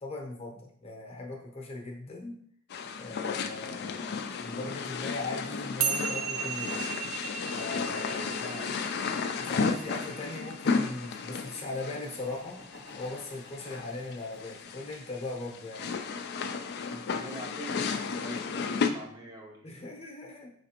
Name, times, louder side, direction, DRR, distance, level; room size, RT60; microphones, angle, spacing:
voice 1, 0.0-2.3 3.0-4.1 4.4-6.8 7.5-8.4 9.4-12.6 13.0-15.9 19.6-20.5, left 2 dB, 30° left, 1 dB, 0.8 m, -39 dB
sound 1, 2.7-18.9, left 5 dB, 55° left, 0.3 m, -34 dB
sound 2, 5.8-12.4, right 7 dB, 90° right, 0.5 m, -36 dB
voice 2, 8.4-8.7 16.9-19.8, right 1 dB, 20° right, -1 dB, 0.6 m, -44 dB
Laughter, 11.9-14.9 15.4-16.5, left 1 dB, 75° right, 1.5 m, -53 dB
5.0 x 3.2 x 2.9 m, 0.64 s
head